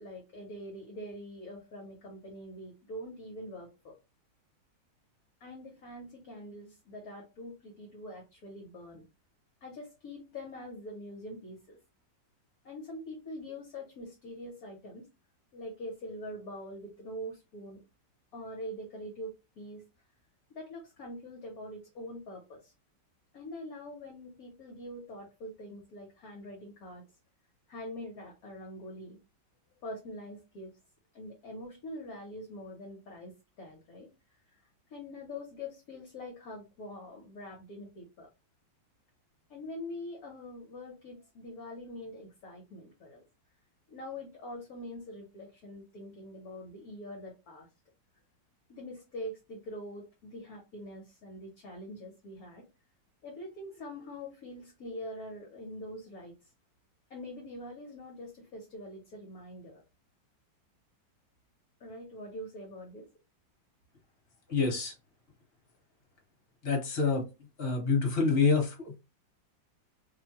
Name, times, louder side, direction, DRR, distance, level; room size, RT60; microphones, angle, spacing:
voice 1, 0.0-4.0 5.4-9.0 9.6-11.8 12.6-15.1 15.5-17.8 18.3-19.8 20.5-22.7 23.3-27.1 27.7-29.2 29.8-30.8 31.1-34.1 34.5-38.3 39.5-43.2 43.9-47.7 48.7-52.7 53.2-56.4 57.1-59.8 61.8-63.1, left 1 dB, 60° left, 1.1 m, -44 dB
voice 2, 64.5-64.9 66.6-67.3 67.6-69.0, left 4 dB, 35° left, 1.3 m, -27 dB
3.1 x 2.2 x 2.7 m
omnidirectional pair, 2.0 m